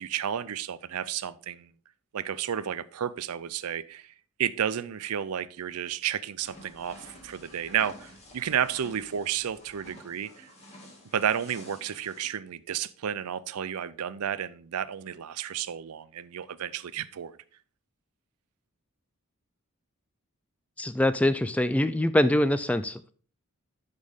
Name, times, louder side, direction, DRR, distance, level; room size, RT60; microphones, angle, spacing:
voice 1, 0.0-1.7 2.1-4.1 4.4-10.5 11.1-17.4, right 9 dB, 90° right, 0.5 m, -32 dB
sound 1, 6.4-12.3, left 1 dB, 30° left, 2.2 m, -51 dB
voice 2, 20.8-23.1, left 1 dB, 5° left, 0.3 m, -24 dB
10.5 x 5.3 x 3.6 m
head